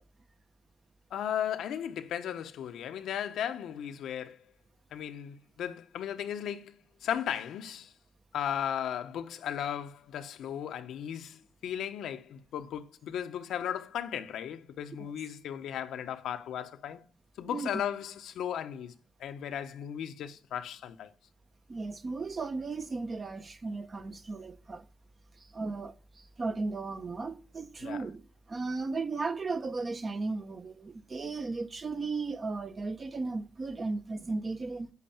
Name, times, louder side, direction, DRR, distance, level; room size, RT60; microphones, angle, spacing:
voice 1, 1.1-4.4 4.9-7.9 8.3-17.0 17.4-18.9 19.2-21.1 27.8-28.0, left 9 dB, 85° left, 1.1 m, -36 dB
voice 2, 21.7-24.8 25.5-34.9, right 3 dB, 40° right, 1.4 m, -35 dB
8.4 x 8.4 x 8.7 m
cardioid pair, 90°, 0 cm